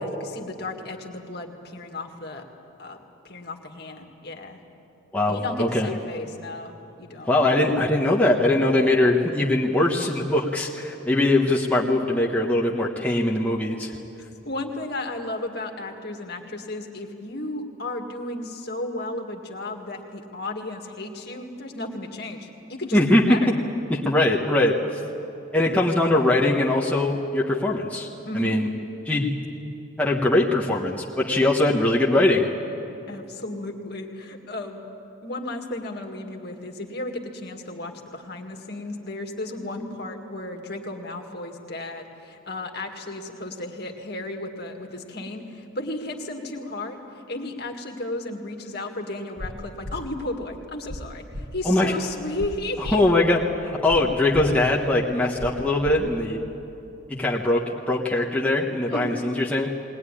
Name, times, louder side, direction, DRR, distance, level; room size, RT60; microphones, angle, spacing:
voice 1, 0.0-2.4 2.8-3.0 3.2-4.6 5.3-6.7 7.0-7.3 14.5-23.0 23.3-23.4 25.6-26.1 28.2-28.6 33.1-34.8 35.2-53.0 58.9-59.2, left 2 dB, 50° left, 3 dB, 2.0 m, -34 dB
voice 2, 5.1-5.9 7.3-13.9 22.9-23.4 23.9-24.8 25.5-28.1 28.3-28.7 29.0-29.3 30.0-32.5 51.6-51.9 52.9-56.4 57.1-59.7, left 1 dB, 5° left, -3 dB, 1.2 m, -21 dB
sound 1, 49.4-49.5 49.8-50.0 50.9-51.0 51.3-51.4 52.4-52.5 52.8-53.0 53.9-54.0 54.3-54.4 55.4-55.5 55.8-55.9, left 1 dB, 25° right, 1.6 m, -34 dB
20.5 x 19.5 x 10.0 m, 2.9 s
head